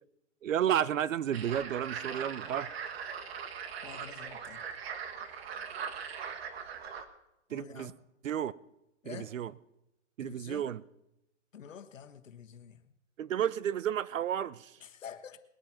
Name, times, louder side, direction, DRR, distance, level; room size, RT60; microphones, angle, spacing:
voice 1, 0.4-2.7 7.5-7.9 8.2-8.5 9.0-9.5 10.2-10.8 13.2-14.7, right 10 dB, 85° right, 0.8 m, -32 dB
sound 1, 1.3-7.1, right 7 dB, 55° right, 1.6 m, -40 dB
voice 2, 3.8-4.6 7.5-7.9 9.0-9.3 10.2-10.7 11.5-12.9 14.8-15.4, left 8 dB, 85° left, 1.5 m, -48 dB
20.5 x 9.0 x 5.9 m
hypercardioid pair, 155°, 38 cm